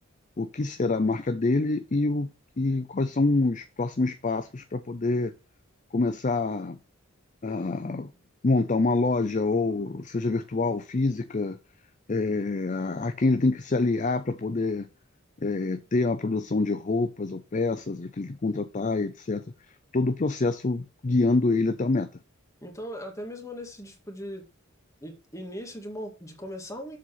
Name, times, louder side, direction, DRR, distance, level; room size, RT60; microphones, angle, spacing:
voice 1, 0.4-2.3 2.6-5.3 5.9-6.8 7.4-8.1 8.4-11.6 12.1-14.9 15.4-19.4 19.9-22.1, left 3 dB, 35° left, 0.5 m, -26 dB
voice 2, 22.6-24.4 25.0-27.0, equal, 15° left, 1.9 m, -39 dB
7.6 x 4.2 x 5.8 m
head